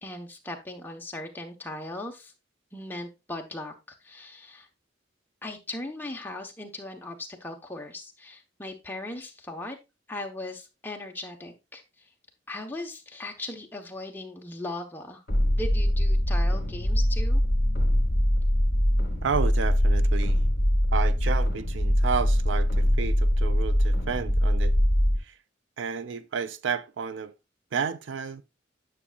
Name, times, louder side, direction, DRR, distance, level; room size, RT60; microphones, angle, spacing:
voice 1, 0.0-2.3 2.7-3.7 4.0-4.7 5.4-9.8 10.1-12.1 12.5-15.2 15.5-17.4, left 2 dB, 10° left, 1.0 m, -38 dB
sound 1, 15.3-25.2, equal, 50° left, 2.2 m, -23 dB
voice 2, 19.2-20.4 20.9-24.7 25.2-25.4 25.8-27.3 27.7-28.4, right 6 dB, 80° right, 0.5 m, -31 dB
9.8 x 6.1 x 2.4 m
head